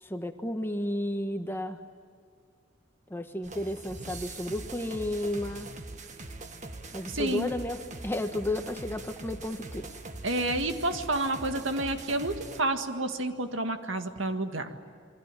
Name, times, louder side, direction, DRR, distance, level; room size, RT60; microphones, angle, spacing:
voice 1, 0.0-1.8 3.1-5.7 6.9-10.0, left 1 dB, 10° left, 6 dB, 1.4 m, -33 dB
sound 1, 3.4-12.6, right 2 dB, 35° right, 1.7 m, -42 dB
voice 2, 7.1-7.5 10.2-14.8, right 2 dB, 75° right, 7 dB, 1.9 m, -30 dB
28.0 x 23.5 x 9.1 m, 2.1 s
head